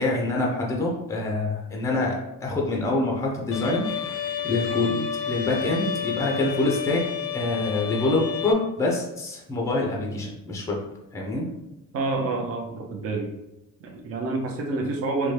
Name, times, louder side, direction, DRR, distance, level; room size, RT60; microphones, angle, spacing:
voice 1, 0.0-4.2 4.4-7.1 7.3-10.8 11.1-11.5, left 2 dB, 10° left, -1 dB, 0.5 m, -26 dB
Bowed string instrument, 3.5-8.5, left 8 dB, 75° left, 0.6 m, -30 dB
voice 2, 11.9-13.3 13.8-15.3, right 3 dB, 45° right, 1 dB, 0.6 m, -28 dB
4.2 x 2.2 x 3.2 m, 0.94 s
cardioid pair, 165°, 33 cm